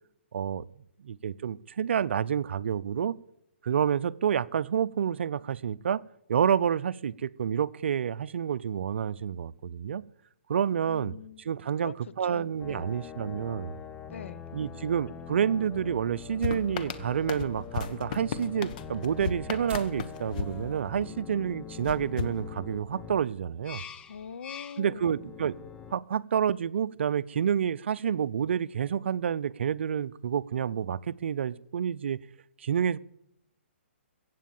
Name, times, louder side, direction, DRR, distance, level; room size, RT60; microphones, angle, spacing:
voice 1, 0.3-0.6 1.0-3.2 3.6-6.0 6.3-10.0 10.5-11.1 11.4-13.8 14.5-23.8 24.8-25.5 25.9-32.2 32.6-33.0, right 8 dB, 65° right, 0.6 m, -29 dB
voice 2, 10.8-12.9 14.1-14.4 24.1-25.2, left 7 dB, 75° left, 0.8 m, -44 dB
sound 1, 12.6-25.9, left 7 dB, 15° left, 0.6 m, -44 dB
sound 2, 16.4-21.3 21.8-23.1, left 6 dB, 40° left, 1.1 m, -36 dB
sound 3, 17.6-24.3, right 5 dB, 15° right, 4.2 m, -52 dB
15.0 x 8.5 x 7.2 m
hypercardioid pair, 155°, 7 cm